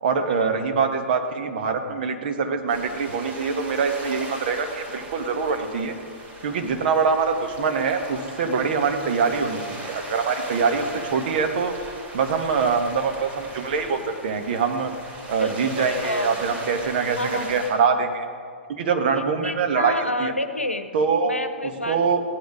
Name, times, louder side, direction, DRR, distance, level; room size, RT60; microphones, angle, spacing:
voice 1, 0.0-5.9 6.4-11.7 12.1-14.9 15.3-18.3 18.7-20.3 20.9-21.3 21.9-22.2, right 5 dB, 50° right, 6 dB, 1.4 m, -24 dB
sound 1, 2.7-17.7, right 1 dB, 20° right, 3.2 m, -38 dB
voice 2, 15.4-16.4 17.2-17.7 19.1-20.9 21.2-22.0, left 1 dB, 85° left, 9 dB, 0.9 m, -29 dB
17.0 x 10.5 x 4.9 m, 2.2 s
figure-of-eight pair, 110°, 7 cm